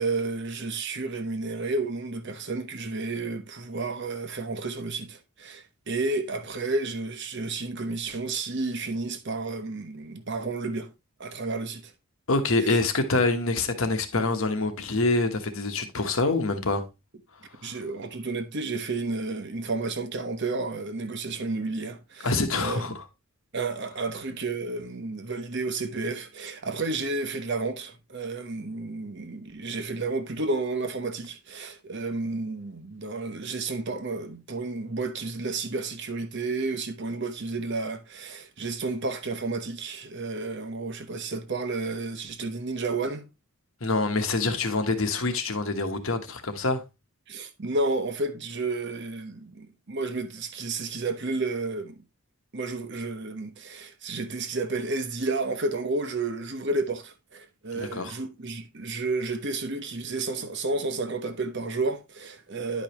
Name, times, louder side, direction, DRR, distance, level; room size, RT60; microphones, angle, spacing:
voice 1, 0.0-10.9 11.2-11.9 12.7-12.8 17.6-22.8 23.5-43.3 47.3-52.0 52.5-62.8, right 3 dB, 50° right, 1.0 m, -31 dB
voice 2, 12.3-16.8 17.6-17.8 22.2-23.0 43.8-46.8 57.7-58.1, left 3 dB, 65° left, 1.2 m, -26 dB
10.5 x 5.2 x 2.9 m
head